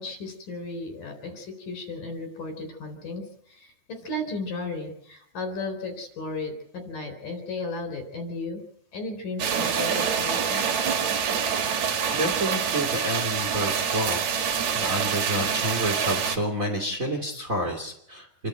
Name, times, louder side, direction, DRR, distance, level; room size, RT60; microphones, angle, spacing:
voice 1, 0.0-3.2 3.5-8.6 8.9-10.7, left 2 dB, 80° left, 6 dB, 5.7 m, -35 dB
sound 1, 9.4-16.4, right 7 dB, 60° right, 3.0 m, -26 dB
voice 2, 12.1-14.5 14.7-18.3, equal, 25° right, 4 dB, 2.8 m, -29 dB
28.0 x 11.5 x 9.1 m, 0.72 s
omnidirectional pair, 3.8 m